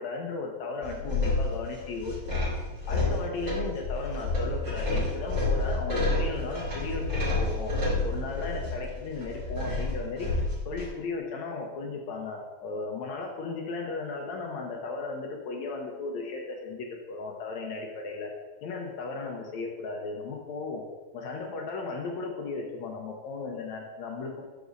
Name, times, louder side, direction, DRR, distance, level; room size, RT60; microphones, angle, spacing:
voice 1, 0.0-2.5 2.9-7.7 8.0-10.3 10.7-18.3 18.6-20.8 21.1-24.4, left 3 dB, 70° left, 1 dB, 1.7 m, -35 dB
sound 1, 0.8-10.9, left 2 dB, 30° right, 2.3 m, -29 dB
13.0 x 6.1 x 2.6 m, 1.2 s
omnidirectional pair, 4.2 m